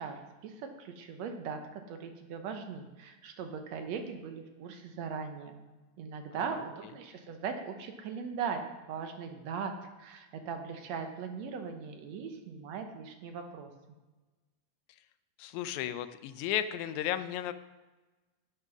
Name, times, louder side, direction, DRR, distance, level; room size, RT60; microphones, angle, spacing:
voice 1, 0.0-5.6 6.0-13.7, right 6 dB, 70° right, 6 dB, 2.0 m, -39 dB
voice 2, 15.4-17.5, left 11 dB, 85° left, 11 dB, 2.0 m, -34 dB
9.2 x 8.3 x 6.0 m, 1.2 s
omnidirectional pair, 3.3 m